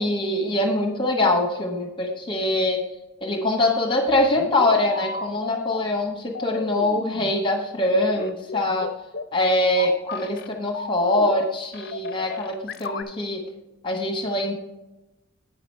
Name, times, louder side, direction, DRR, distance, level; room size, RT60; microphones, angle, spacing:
voice 1, 0.0-2.8 3.2-8.9 9.3-13.4 13.8-14.5, left 1 dB, 25° left, 2 dB, 1.1 m, -23 dB
sound 1, 4.1-5.9 6.4-7.3 8.2-10.5 10.7-11.5 11.7-13.0, left 4 dB, 55° left, 0.6 m, -33 dB
8.9 x 6.0 x 4.3 m, 1.0 s
head